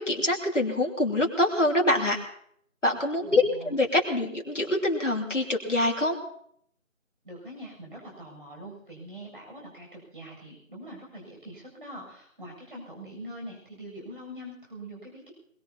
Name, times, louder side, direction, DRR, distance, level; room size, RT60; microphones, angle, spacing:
voice 1, 0.0-2.2 2.8-6.2, left 1 dB, 60° left, -1 dB, 2.9 m, -25 dB
voice 2, 3.2-3.8 7.2-15.3, equal, 40° right, -1 dB, 7.5 m, -43 dB
24.0 x 20.5 x 2.9 m, 0.67 s
figure-of-eight pair, 175°, 41 cm